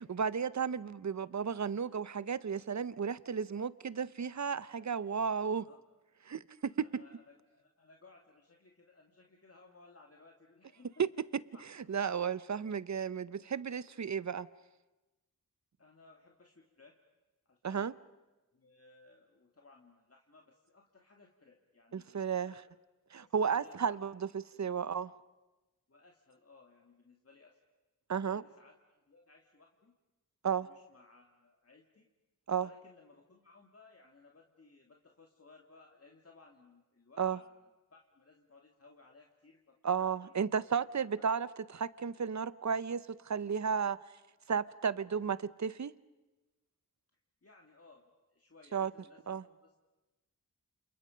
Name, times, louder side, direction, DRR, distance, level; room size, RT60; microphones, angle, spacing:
voice 1, 0.1-5.7 6.3-6.9 11.0-11.1 11.9-14.5 17.6-17.9 21.9-22.5 23.1-25.1 28.1-28.4 30.4-30.7 32.5-32.7 37.2-37.4 39.8-44.0 44.5-45.9 48.7-48.9 49.3-49.4, right 6 dB, 55° right, 0.7 m, -33 dB
voice 2, 6.8-11.0 11.5-11.6 15.8-17.0 17.5-17.9 18.5-22.7 23.1-24.0 24.5-24.6 25.9-27.6 28.2-30.0 30.6-32.1 32.6-37.5 37.9-40.4 41.2-41.3 47.4-49.8, left 3 dB, 45° left, 2.1 m, -61 dB
28.5 x 28.0 x 5.2 m
wide cardioid pair, 70°, 33 cm